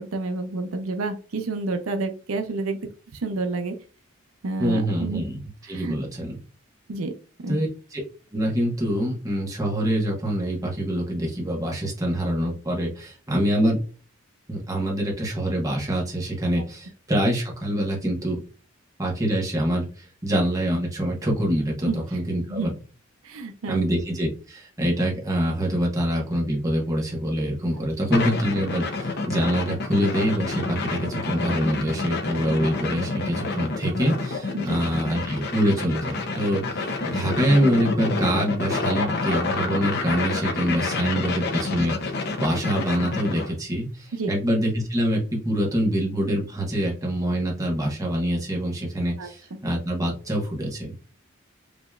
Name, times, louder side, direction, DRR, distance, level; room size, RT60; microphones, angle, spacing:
voice 1, 0.0-2.8 3.1-3.7 4.4-5.2 5.6-6.0 6.9-7.1 7.4-7.6 21.9-22.0 22.5-22.7 23.2-23.9 34.5-34.8 44.1-44.3 49.2-49.3, right 3 dB, 85° right, 6 dB, 0.6 m, -29 dB
voice 2, 4.6-5.4 5.7-6.4 7.5-8.0 8.3-13.8 14.5-18.4 19.0-22.7 23.7-42.1 42.4-51.0, equal, 15° right, -3 dB, 1.1 m, -25 dB
sound 1, 28.1-43.5, left 3 dB, 50° left, 0.6 m, -28 dB
5.2 x 2.9 x 2.3 m, 0.38 s
head